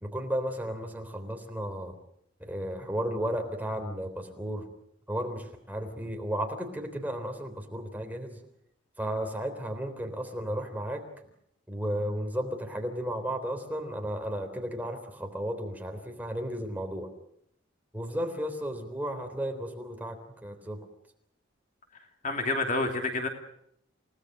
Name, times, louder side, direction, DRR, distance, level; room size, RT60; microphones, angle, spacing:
voice 1, 0.0-2.0 2.4-4.6 5.1-8.4 9.0-11.0 11.7-17.1 17.9-20.8, equal, 10° right, 4 dB, 3.5 m, -34 dB
voice 2, 22.2-23.3, left 2 dB, 40° left, 3 dB, 2.9 m, -28 dB
29.5 x 18.5 x 6.6 m, 0.72 s
head